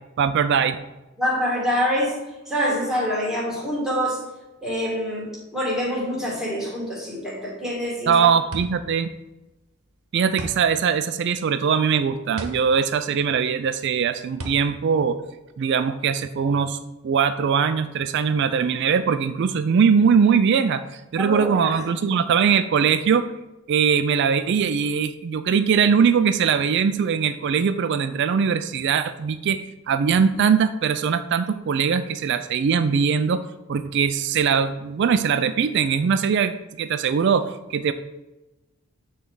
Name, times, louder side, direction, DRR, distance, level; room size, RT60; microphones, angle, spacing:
voice 1, 0.2-0.8 8.1-9.1 10.1-15.2 15.6-16.8 17.0-23.3 23.7-33.4 33.7-37.9, right 6 dB, 50° right, 10 dB, 0.3 m, -21 dB
voice 2, 1.2-2.2 2.5-4.2 4.6-8.1 21.2-21.8, equal, ahead, -6 dB, 1.9 m, -25 dB
sound 1, 7.7-16.0, right 1 dB, 80° right, 1.0 m, -39 dB
8.5 x 3.3 x 4.7 m, 1.0 s
head